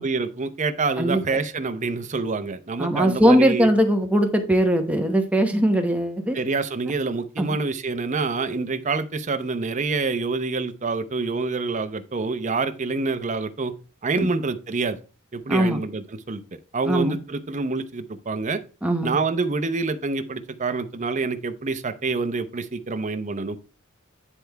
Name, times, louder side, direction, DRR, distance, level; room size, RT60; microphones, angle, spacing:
voice 1, 0.0-3.7 6.3-13.7 14.0-15.0 15.3-16.4 16.7-18.6 19.0-23.6, right 3 dB, 35° right, 9 dB, 0.7 m, -26 dB
voice 2, 2.8-6.4 7.4-7.6 14.2-14.3 15.5-15.8 16.8-17.2 18.8-19.2, equal, 5° right, 4 dB, 1.0 m, -20 dB
9.9 x 3.4 x 4.5 m, 0.34 s
head